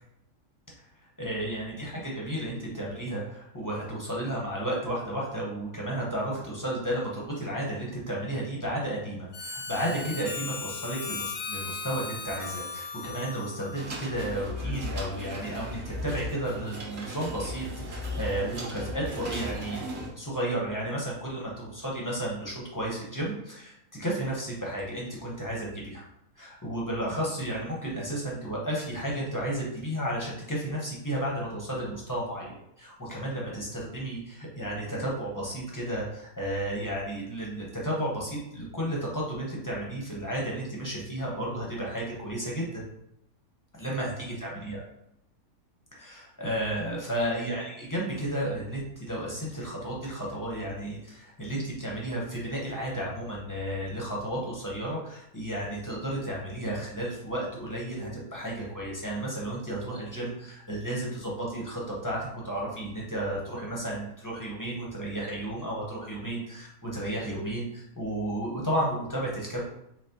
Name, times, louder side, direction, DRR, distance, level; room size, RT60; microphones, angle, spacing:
voice 1, 1.2-19.8 20.2-26.0 26.4-42.8 43.7-44.9 45.9-69.6, right 1 dB, 20° left, -4 dB, 0.6 m, -33 dB
Harmonica, 9.3-14.5, left 4 dB, 60° left, 0.8 m, -38 dB
sound 1, 13.7-20.1, left 1 dB, 45° right, 0.8 m, -36 dB
4.0 x 3.0 x 2.8 m, 0.79 s
omnidirectional pair, 1.5 m